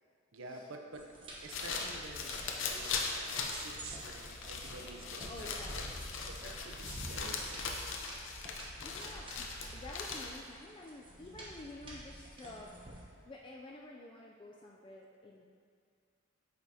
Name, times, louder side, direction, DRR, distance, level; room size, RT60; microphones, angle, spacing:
voice 1, 0.3-1.1 1.4-5.9 6.3-7.6, right 3 dB, 65° right, 3 dB, 0.7 m, -49 dB
sound 1, 0.9-13.0, right 1 dB, 25° right, 1.0 m, -49 dB
sound 2, 1.3-10.5, left 4 dB, 65° left, 0.6 m, -40 dB
voice 2, 5.3-5.8 6.4-7.2 8.8-12.7 13.1-15.5, left 2 dB, 25° left, -2 dB, 0.4 m, -50 dB
8.0 x 5.1 x 2.8 m, 2.3 s
head